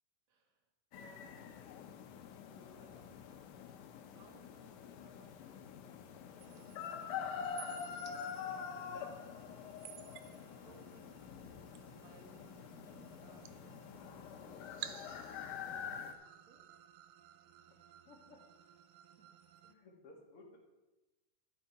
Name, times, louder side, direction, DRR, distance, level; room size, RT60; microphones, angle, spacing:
voice 1, 0.3-0.6 1.0-1.7 2.5-3.5 4.1-6.8 10.6-10.8 11.9-13.7 16.5-16.7 19.2-19.3, right 3 dB, 60° right, 2 dB, 2.9 m, -64 dB
sound 1, 0.9-16.1, left 7 dB, 75° left, 2.3 m, -46 dB
sound 2, 6.4-19.7, right 12 dB, 75° right, 1.9 m, -55 dB
voice 2, 10.5-10.9 18.1-18.4 19.6-20.6, left 2 dB, 45° left, -1 dB, 2.6 m, -58 dB
13.5 x 8.8 x 4.6 m, 1.1 s
omnidirectional pair, 3.8 m